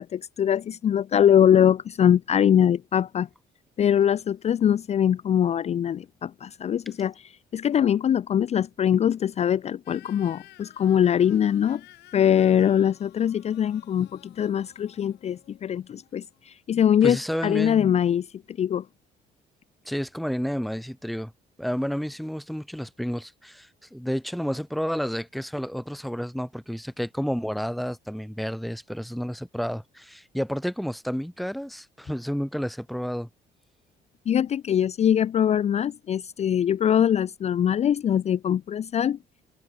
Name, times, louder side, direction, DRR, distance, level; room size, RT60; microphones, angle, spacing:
voice 1, 0.0-3.3 3.8-11.8 12.1-17.2 17.4-18.9 34.3-39.2, left 9 dB, 40° left, 0.6 m, -22 dB
sound 1, 9.8-16.6, left 17 dB, 80° left, 5.4 m, -54 dB
voice 2, 16.7-17.9 19.8-21.3 21.6-33.3, equal, ahead, 1.2 m, -31 dB
open air
cardioid pair, 110°, 17 cm